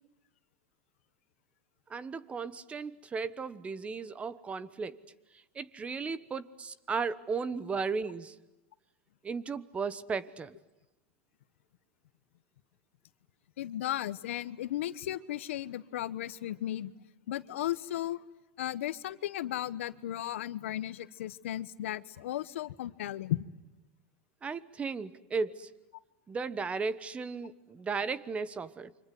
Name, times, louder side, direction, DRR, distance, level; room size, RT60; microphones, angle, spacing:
voice 1, 1.9-5.0 5.5-8.4 9.2-10.5 24.4-25.7 26.3-28.9, right 5 dB, 20° right, 18 dB, 1.2 m, -35 dB
voice 2, 13.6-16.9 17.3-18.2 18.6-23.4, left 13 dB, 85° left, 16 dB, 1.2 m, -35 dB
29.5 x 25.5 x 7.8 m, 1.0 s
supercardioid pair, 135°, 7 cm